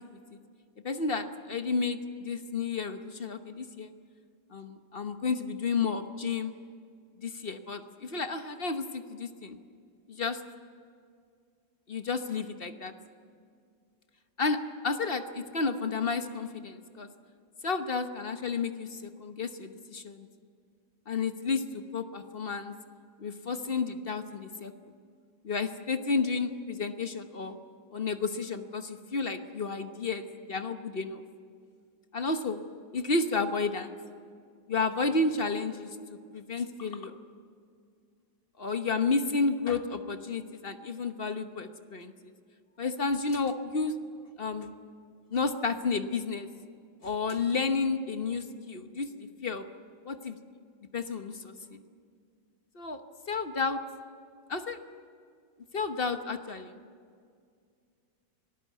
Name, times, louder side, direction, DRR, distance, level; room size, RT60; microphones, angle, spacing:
voice 1, 0.8-3.9 4.5-6.5 7.2-9.6 10.1-10.4 11.9-12.9 14.4-14.6 14.8-17.1 17.6-20.3 21.1-22.7 23.2-24.9 25.4-27.6 27.9-31.2 32.1-32.6 32.9-34.0 34.7-36.0 36.3-37.2 38.6-42.3 42.8-43.9 44.4-44.7 45.3-46.5 47.0-49.7 50.0-50.4 50.9-51.8 52.7-53.0 53.3-53.8 54.5-54.8 55.7-56.8, left 4 dB, 40° left, 8 dB, 1.0 m, -31 dB
25.5 x 19.0 x 8.3 m, 2.2 s
omnidirectional pair, 2.1 m